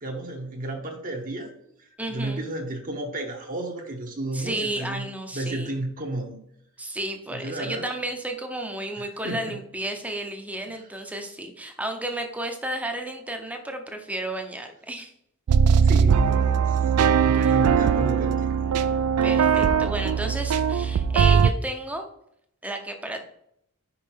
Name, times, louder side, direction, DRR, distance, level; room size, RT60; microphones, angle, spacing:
voice 1, 0.0-1.5 1.8-5.1 5.3-6.4 7.3-7.9 9.0-9.6 10.7-10.8 15.8-16.8 17.2-18.5 19.5-19.7, right 2 dB, 40° right, 1 dB, 1.1 m, -32 dB
voice 2, 2.0-2.4 4.3-5.7 6.8-15.1 17.4-17.5 19.2-22.1 22.6-23.3, right 1 dB, 5° right, 4 dB, 0.8 m, -32 dB
sound 1, 15.5-21.5, right 7 dB, 90° right, 0.4 m, -20 dB
5.5 x 5.1 x 4.5 m, 0.74 s
head